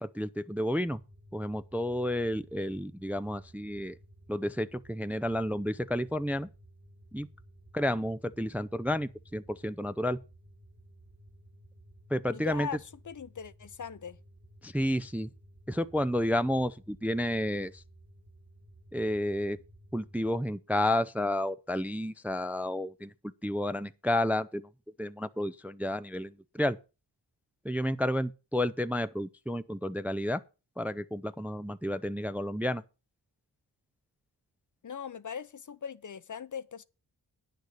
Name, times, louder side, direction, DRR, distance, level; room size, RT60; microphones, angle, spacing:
voice 1, 0.0-1.0 1.3-3.9 4.3-6.5 7.1-7.3 7.7-10.2 12.1-12.7 14.6-15.3 15.7-17.8 18.9-19.6 19.9-23.1 23.4-24.7 25.0-26.8 27.6-30.4 30.8-32.8, left 1 dB, 5° right, 0.4 m, -31 dB
sound 1, 0.8-20.4, right 1 dB, 45° right, 2.3 m, -56 dB
voice 2, 12.3-14.2 34.8-36.8, left 7 dB, 45° left, 0.6 m, -40 dB
9.7 x 6.7 x 6.5 m
wide cardioid pair, 80°, 44 cm